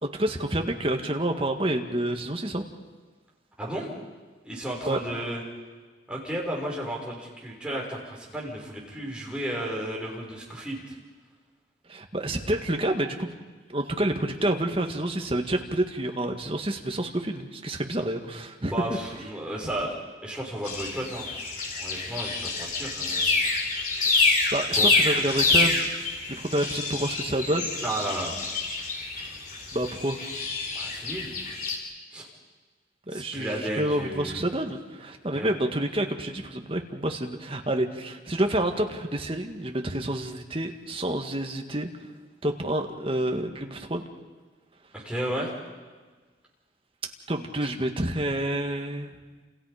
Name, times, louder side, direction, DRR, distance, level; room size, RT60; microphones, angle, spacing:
voice 1, 0.0-2.6 4.8-5.0 11.9-13.3 13.7-18.7 24.0-25.9 26.3-27.7 29.7-30.2 33.1-41.9 42.4-44.0 47.3-49.1, right 1 dB, 30° right, 4 dB, 1.9 m, -28 dB
voice 2, 3.6-3.9 4.4-5.4 6.1-10.9 18.6-20.0 20.2-21.3 21.8-23.5 24.8-24.9 27.8-28.4 30.7-31.3 32.1-32.3 33.1-34.4 35.3-35.5 44.9-45.5, right 1 dB, 5° right, -3 dB, 5.8 m, -33 dB
sound 1, 20.6-31.8, left 3 dB, 50° left, 4.1 m, -27 dB
29.0 x 28.5 x 5.2 m, 1.4 s
head